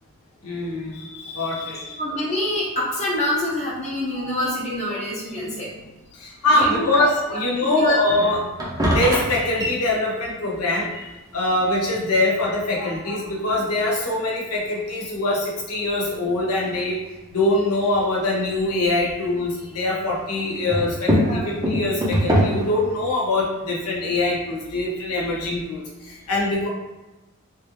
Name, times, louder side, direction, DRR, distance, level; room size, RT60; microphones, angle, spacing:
voice 1, 0.4-2.0 4.1-4.3 4.9-5.0 6.1-8.4 8.9-17.0 17.3-26.7, left 2 dB, 90° left, -4 dB, 0.9 m, -23 dB
voice 2, 2.0-5.7 6.5-7.0 7.6-8.0 20.4-20.7 21.2-21.5, left 1 dB, 30° left, -5 dB, 0.7 m, -26 dB
sound 1, 6.6-7.3 7.8-10.6 11.0-11.1 11.5-12.9 13.4-13.5 14.0-14.1 14.6-14.7 16.7-17.0 17.7-19.2 19.4-22.9, equal, 15° right, 0.5 m, -25 dB
3.1 x 2.5 x 3.0 m, 1.1 s
head